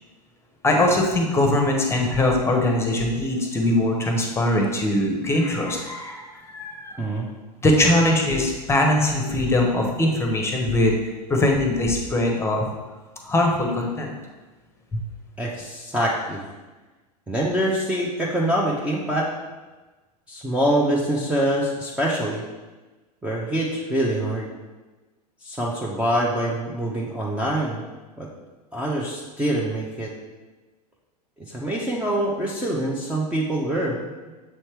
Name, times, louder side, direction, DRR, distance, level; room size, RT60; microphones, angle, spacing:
voice 1, 0.6-7.0 7.6-10.9 11.3-12.7 13.3-14.1 14.9-15.0, left 1 dB, 10° left, 1 dB, 1.0 m, -21 dB
voice 2, 15.4-16.4 17.3-19.3 20.3-22.4 23.2-24.5 25.4-27.8 28.2-28.3 28.7-30.1 31.5-34.1, right 1 dB, 5° right, -4 dB, 0.8 m, -25 dB
7.2 x 4.3 x 3.3 m, 1.2 s
figure-of-eight pair, 90°, 21 cm